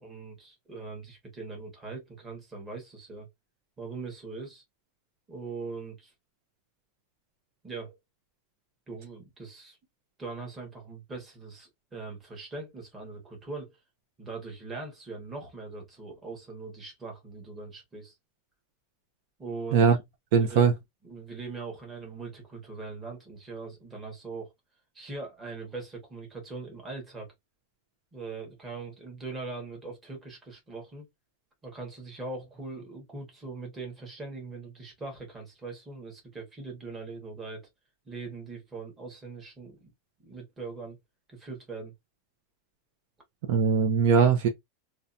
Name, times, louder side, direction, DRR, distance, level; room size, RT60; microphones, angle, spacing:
voice 1, 0.0-3.3 3.8-4.6 5.3-6.1 7.6-8.0 8.9-9.8 10.2-13.8 14.2-18.1 19.4-19.9 20.4-20.7 21.0-24.5 24.9-27.3 28.1-31.1 31.6-37.7 38.1-39.9 40.2-41.0 41.3-41.9, right 3 dB, 15° right, 1.1 m, -41 dB
voice 2, 20.3-20.7 43.5-44.5, right 6 dB, 55° right, 0.5 m, -20 dB
2.7 x 2.2 x 2.5 m
supercardioid pair, 160°, 0 cm